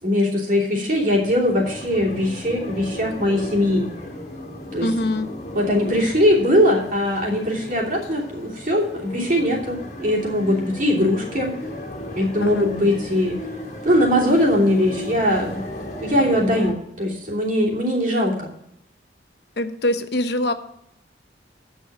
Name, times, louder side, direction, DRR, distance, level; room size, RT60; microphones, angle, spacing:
voice 1, 0.0-3.9 4.7-4.9 5.5-11.5 12.1-13.4 13.8-15.6 16.0-18.5, left 1 dB, 50° right, -2 dB, 2.9 m, -20 dB
sound 1, 0.9-16.7, left 1 dB, 40° left, 1.7 m, -35 dB
voice 2, 4.8-5.3 12.4-12.7 19.6-20.5, left 1 dB, 65° left, 9 dB, 0.8 m, -23 dB
9.2 x 6.4 x 7.4 m, 0.77 s
head